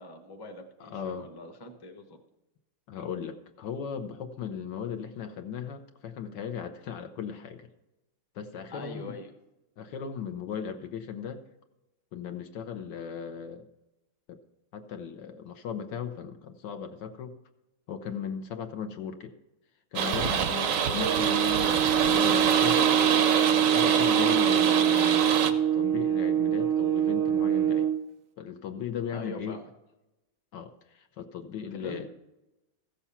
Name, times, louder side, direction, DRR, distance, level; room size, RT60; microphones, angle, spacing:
voice 1, 0.0-2.2 8.7-9.3 20.6-21.1 29.1-29.6 31.8-32.1, left 2 dB, 15° left, 4 dB, 0.8 m, -42 dB
voice 2, 0.8-1.3 2.9-7.7 8.3-9.2 9.8-11.4 12.1-13.7 14.3-14.4 14.7-17.4 17.9-19.3 19.9-23.0 23.5-27.9 28.4-29.6 30.5-32.1, left 7 dB, 70° left, 8 dB, 1.4 m, -37 dB
sound 1, 20.0-25.5, right 7 dB, 60° right, 0.9 m, -25 dB
sound 2, 21.0-28.0, right 10 dB, 90° right, 0.6 m, -25 dB
14.5 x 7.1 x 5.6 m, 0.96 s
omnidirectional pair, 2.1 m